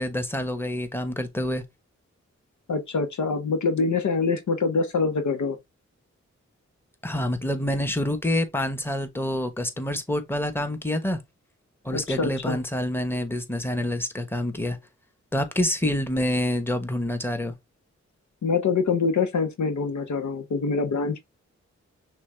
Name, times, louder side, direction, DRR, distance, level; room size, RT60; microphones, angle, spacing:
voice 1, 0.0-1.6 7.0-11.2 11.8-14.8 15.3-17.5, left 1 dB, 10° left, 1.0 m, -27 dB
voice 2, 2.7-5.6 11.9-12.6 18.4-21.2, left 4 dB, 80° left, 0.8 m, -25 dB
6.1 x 2.3 x 3.4 m
cardioid pair, 60°, 29 cm